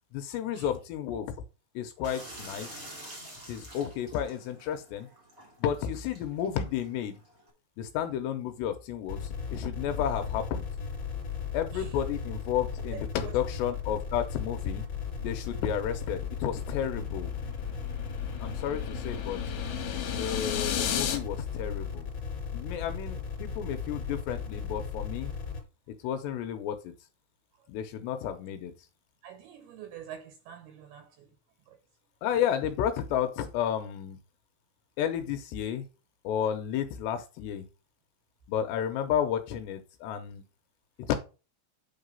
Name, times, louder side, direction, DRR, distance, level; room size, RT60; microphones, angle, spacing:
voice 1, 0.1-1.3 1.8-2.8 3.5-5.1 5.6-7.2 7.8-10.7 11.5-14.8 15.2-17.3 18.4-19.4 20.1-22.1 22.5-25.3 26.0-26.9 27.7-28.7 32.2-34.2 35.0-35.9 36.2-37.7 38.5-40.4 41.1-41.2, left 9 dB, 80° left, 2.7 m, -32 dB
sound 1, 2.0-7.5, right 1 dB, 30° right, 1.8 m, -48 dB
sound 2, 9.1-25.6, left 6 dB, 30° left, 3.2 m, -36 dB
voice 2, 12.9-13.3 29.2-31.3 31.7-31.8, right 9 dB, 75° right, 2.5 m, -46 dB
sound 3, 16.9-21.2, left 9 dB, 65° left, 2.6 m, -34 dB
8.8 x 4.0 x 5.3 m
omnidirectional pair, 5.4 m